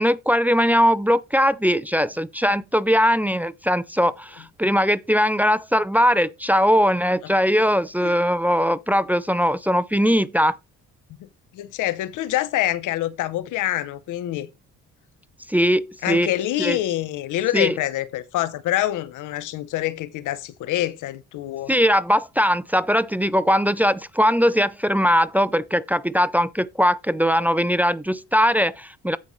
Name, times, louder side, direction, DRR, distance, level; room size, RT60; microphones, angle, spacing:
voice 1, 0.0-10.6 15.5-16.3 16.6-16.8 17.5-17.8 21.7-29.2, equal, 5° right, 0.5 m, -20 dB
voice 2, 11.5-14.5 16.0-21.7, left 14 dB, 85° left, 0.8 m, -26 dB
15.5 x 5.3 x 3.1 m
cardioid pair, 90°, 30 cm